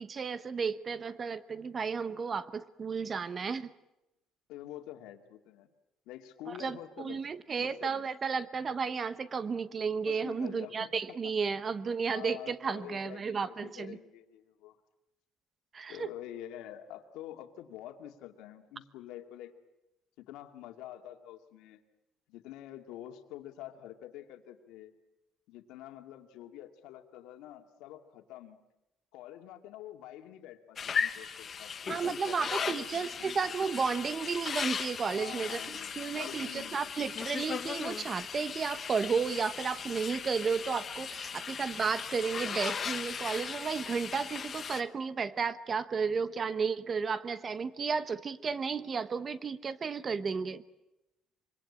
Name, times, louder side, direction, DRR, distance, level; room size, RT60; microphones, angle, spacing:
voice 1, 0.0-3.7 6.6-14.0 15.7-16.1 31.9-35.6 36.0-50.6, right 5 dB, 25° right, 15 dB, 1.0 m, -33 dB
voice 2, 4.5-5.7 6.1-7.2 7.6-8.0 10.0-11.0 12.1-14.8 15.9-19.5 20.2-21.8 22.3-24.9 25.5-28.6 29.1-31.7 32.0-33.3 35.1-36.8, left 12 dB, 85° left, 6 dB, 2.4 m, -47 dB
sound 1, 30.8-44.8, left 7 dB, 30° left, 1.1 m, -37 dB
25.5 x 24.0 x 8.7 m, 0.93 s
cardioid pair, 165°, 0 cm